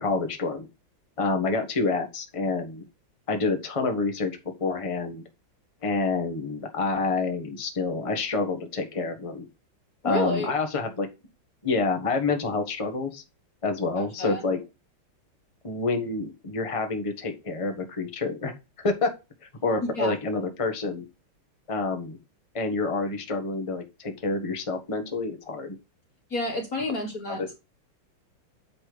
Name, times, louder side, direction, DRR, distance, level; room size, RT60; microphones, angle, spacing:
voice 1, 0.0-0.7 1.2-2.8 3.3-4.3 4.6-5.2 5.8-9.5 10.0-11.1 11.6-13.2 13.6-14.6 15.6-18.5 18.8-19.1 19.4-21.0 21.7-22.2 22.5-25.8 27.3-27.5, left 3 dB, 20° left, 5 dB, 1.2 m, -28 dB
voice 2, 10.0-10.5 14.0-14.4 20.0-20.1 26.3-27.5, left 1 dB, 45° left, 2 dB, 2.0 m, -29 dB
8.8 x 4.3 x 5.0 m, 0.26 s
omnidirectional pair, 2.2 m